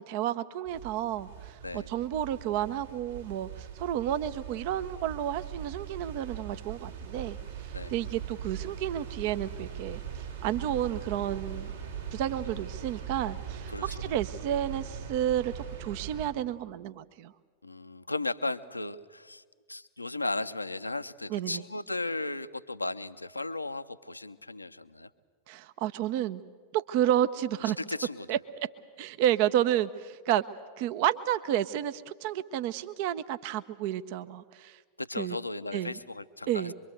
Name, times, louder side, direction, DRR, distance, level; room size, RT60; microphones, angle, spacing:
voice 1, 0.0-7.4 7.6-11.8 12.1-17.3 21.3-21.6 25.5-26.4 26.7-27.8 28.3-28.4 29.0-30.4 30.8-34.8 35.2-35.4 35.7-36.0 36.5-36.7, right 11 dB, 45° right, 13 dB, 0.8 m, -31 dB
sound 1, 0.7-16.3, right 8 dB, 70° right, 3.6 m, -40 dB
voice 2, 13.7-14.1 17.6-19.4 19.7-25.1 27.8-28.3 35.0-36.7, left 2 dB, 85° left, 12 dB, 0.7 m, -35 dB
24.5 x 23.5 x 7.9 m, 1.6 s
figure-of-eight pair, 90°, 0 cm